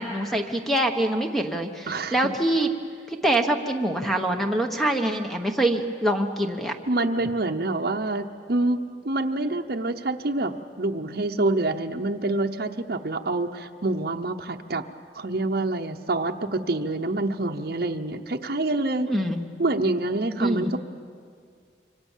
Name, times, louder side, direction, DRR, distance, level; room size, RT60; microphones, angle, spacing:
voice 1, 0.0-2.7 3.1-6.7 19.1-19.4 20.4-20.7, right 1 dB, ahead, 4 dB, 1.1 m, -25 dB
voice 2, 1.9-2.2 6.9-14.8 15.1-19.2 19.6-20.8, right 2 dB, 55° right, 2 dB, 0.8 m, -26 dB
27.0 x 24.5 x 7.4 m, 2.2 s
head